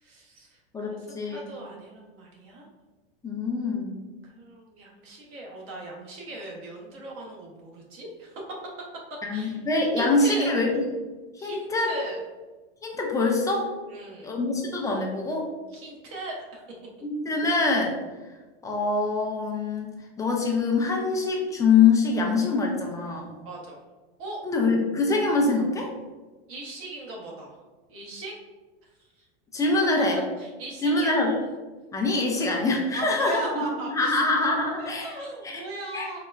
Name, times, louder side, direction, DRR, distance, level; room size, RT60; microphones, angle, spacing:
voice 1, 0.0-2.7 4.2-8.6 9.3-9.6 10.0-10.5 11.4-12.2 13.9-14.3 15.7-16.6 23.4-23.8 24.2-24.4 26.5-27.6 27.9-28.4 29.2-29.3 30.1-31.2 32.9-34.2 34.8-36.2, right 1 dB, 45° right, -2 dB, 1.0 m, -38 dB
voice 2, 0.7-1.5 3.2-4.0 9.3-10.8 11.4-11.9 12.8-13.7 14.2-15.5 17.0-18.0 18.6-19.9 20.2-23.3 24.4-25.9 29.5-30.2 30.8-31.3 31.9-33.6 33.9-35.1 35.4-35.6 35.9-36.1, left 3 dB, 10° left, 0 dB, 0.3 m, -24 dB
3.9 x 2.1 x 2.4 m, 1.3 s
supercardioid pair, 120°, 32 cm